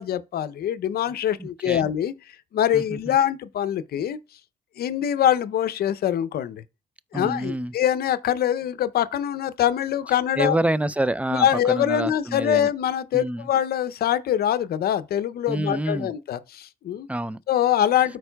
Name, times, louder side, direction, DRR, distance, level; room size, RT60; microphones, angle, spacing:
voice 1, 0.0-2.1 2.5-4.2 4.8-6.6 7.1-10.6 11.3-17.1 17.5-18.2, left 10 dB, 70° left, 0.6 m, -24 dB
voice 2, 1.4-1.9 2.7-3.2 7.1-7.7 10.4-12.7 13.1-13.5 15.5-16.1 17.1-17.4, right 1 dB, 10° right, 0.5 m, -27 dB
13.0 x 4.6 x 2.3 m
supercardioid pair, 55°, 17 cm